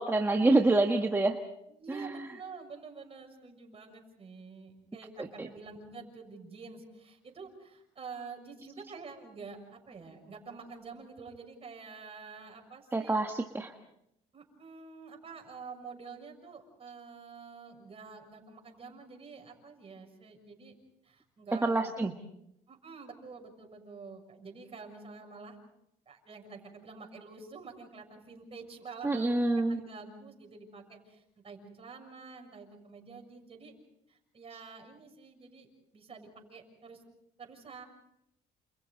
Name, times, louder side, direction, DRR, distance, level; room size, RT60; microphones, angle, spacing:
voice 1, 0.0-1.4 1.9-2.3 5.4-5.5 12.9-13.7 21.6-22.1 29.0-29.8, right 2 dB, 15° right, 3 dB, 1.4 m, -27 dB
voice 2, 1.7-13.1 14.3-20.8 21.0-21.9 22.7-25.6 26.1-33.7 34.1-35.7 35.9-37.0 37.4-37.8, right 4 dB, 35° right, 3 dB, 6.6 m, -48 dB
29.5 x 28.5 x 4.0 m, 0.80 s
cardioid pair, 110°, 17 cm